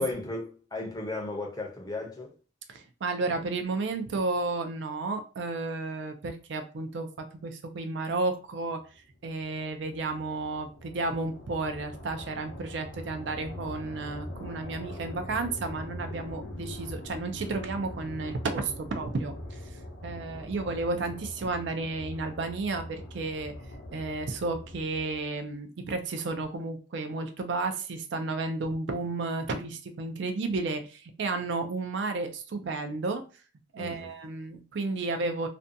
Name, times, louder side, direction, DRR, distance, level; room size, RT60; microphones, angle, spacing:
voice 1, 0.0-2.3 33.8-34.1, left 2 dB, 20° left, 0.5 m, -34 dB
voice 2, 2.7-8.8 9.2-19.6 20.0-23.5 23.9-33.2 33.7-35.5, right 3 dB, 60° right, 0.4 m, -32 dB
sound 1, 9.1-25.3, left 1 dB, 65° left, 0.5 m, -42 dB
2.5 x 2.2 x 2.6 m
head